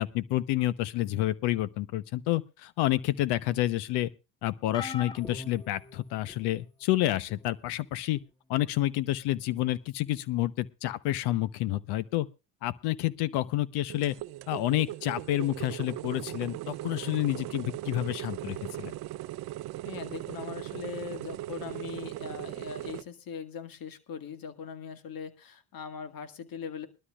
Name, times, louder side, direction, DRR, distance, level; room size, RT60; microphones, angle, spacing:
voice 1, 0.0-4.1 4.4-8.2 8.5-12.3 12.6-14.2 14.5-18.9, left 15 dB, 80° left, 0.9 m, -29 dB
sound 1, 4.7-6.5 7.3-7.5 8.8-8.9, left 3 dB, 10° left, 0.8 m, -42 dB
sound 2, 13.9-23.0, right 15 dB, 70° right, 0.7 m, -39 dB
voice 2, 19.9-26.9, left 6 dB, 60° left, 2.0 m, -40 dB
21.5 x 12.5 x 2.4 m
supercardioid pair, 80°, 39 cm